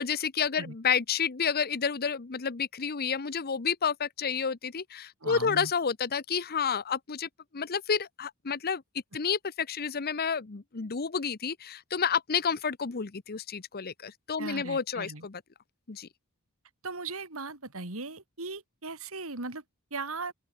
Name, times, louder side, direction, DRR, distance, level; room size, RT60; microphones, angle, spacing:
voice 1, 0.0-8.8 9.1-15.4 15.9-16.1, left 6 dB, 45° left, 0.8 m, -30 dB
voice 2, 5.2-5.7 14.4-15.2 16.8-19.6 19.9-20.3, right 3 dB, 70° right, 3.3 m, -38 dB
open air
head